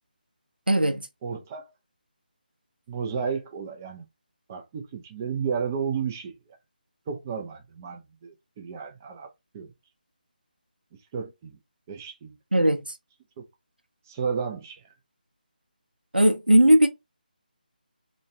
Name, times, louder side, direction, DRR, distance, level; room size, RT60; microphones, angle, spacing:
voice 1, 0.7-1.0 12.5-12.8 16.1-16.9, right 1 dB, 80° right, 0.7 m, -18 dB
voice 2, 1.2-1.7 2.9-4.1 4.5-6.3 7.1-9.7 11.1-11.6 11.9-12.7 13.4-13.5 14.1-14.8, right 6 dB, 15° right, 0.4 m, -33 dB
2.9 x 2.3 x 2.6 m
figure-of-eight pair, 155°, 5 cm